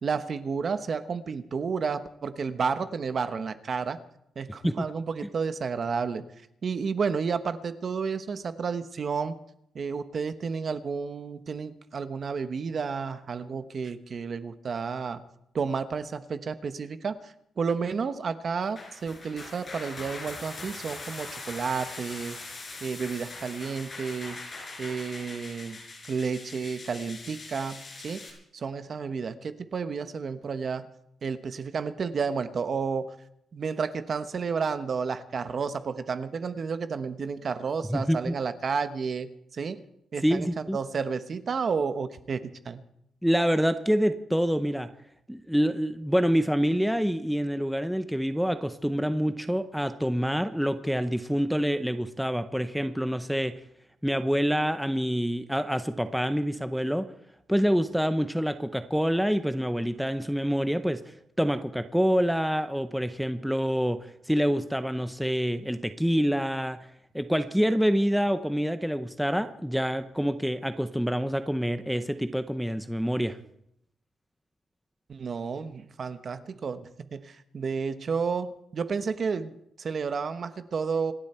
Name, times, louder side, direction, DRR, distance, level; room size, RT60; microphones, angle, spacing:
voice 1, 0.0-4.0 4.4-6.2 6.6-9.3 9.7-15.2 15.5-22.4 22.8-24.4 24.8-25.8 26.1-28.3 28.5-30.9 31.2-33.1 33.5-39.8 40.1-40.5 40.7-42.8 75.1-81.1, right 5 dB, 45° right, 11 dB, 1.1 m, -31 dB
sound 1, 18.6-28.3, left 3 dB, 30° left, 5.5 m, -42 dB
voice 2, 37.9-38.3 40.2-40.8 43.2-44.9 45.3-53.5 54.0-57.1 57.5-61.0 61.4-64.0 64.3-66.8 67.1-73.4, equal, ahead, 9 dB, 0.7 m, -26 dB
27.0 x 11.5 x 4.4 m, 0.76 s
cardioid pair, 140°, 0 cm